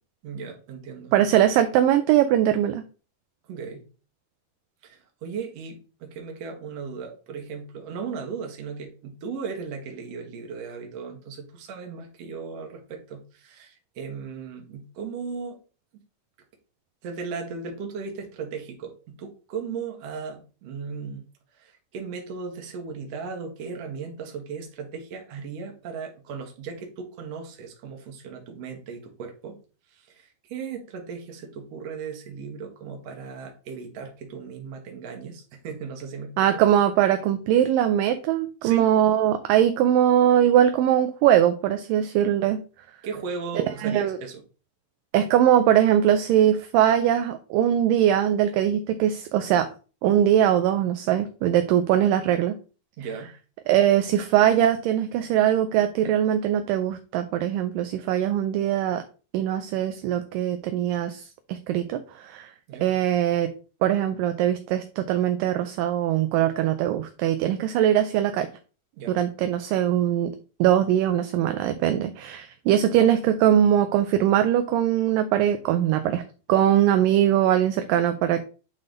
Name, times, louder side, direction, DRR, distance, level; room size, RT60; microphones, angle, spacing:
voice 1, 0.2-1.1 3.5-3.9 4.8-15.6 17.0-21.2 21.5-29.6 29.9-36.5 38.6-38.9 43.0-44.4 53.0-53.3 62.7-62.9 69.0-69.1, right 5 dB, 55° right, 2 dB, 2.1 m, -36 dB
voice 2, 1.1-2.8 36.4-42.6 43.8-44.2 45.1-49.7 50.0-52.6 53.7-59.0 59.3-62.5 62.8-63.5 63.8-68.5 69.1-70.3 70.6-76.2 76.5-78.4, right 11 dB, 80° right, 9 dB, 2.1 m, -21 dB
9.0 x 3.9 x 3.8 m, 0.35 s
omnidirectional pair, 4.2 m